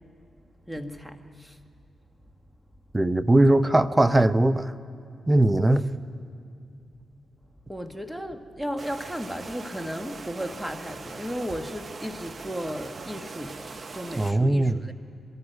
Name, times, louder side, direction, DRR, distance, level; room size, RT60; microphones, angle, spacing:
voice 1, 0.7-1.6 7.7-14.9, equal, 5° right, 1.6 m, -35 dB
voice 2, 2.9-4.7 5.3-5.9 14.2-14.8, right 1 dB, 20° right, 0.7 m, -20 dB
sound 1, 8.8-14.3, right 4 dB, 50° right, 0.9 m, -41 dB
23.0 x 13.5 x 9.3 m
supercardioid pair, 50°, 0 cm